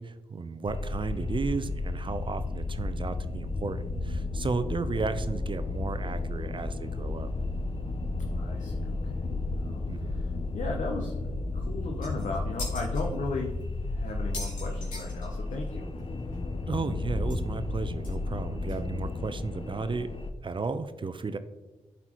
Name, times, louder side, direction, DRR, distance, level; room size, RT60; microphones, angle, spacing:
voice 1, 0.0-7.3 9.9-10.2 16.7-20.1 20.4-21.4, right 4 dB, 40° right, 11 dB, 0.6 m, -34 dB
sound 1, 0.7-20.3, left 2 dB, 45° left, 0.7 m, -33 dB
voice 2, 8.3-9.3 9.6-11.2 11.5-13.6 13.8-15.9, left 3 dB, 70° left, 0 dB, 0.9 m, -36 dB
sound 2, 11.6-11.7 12.0-13.0 13.6-13.7 14.1-15.7 16.0-16.1 16.3-16.4 17.3-17.4 18.0-18.1 18.7-18.8, left 2 dB, 85° left, 2.1 m, -41 dB
11.0 x 4.2 x 3.0 m, 1.1 s
supercardioid pair, 45°, 13 cm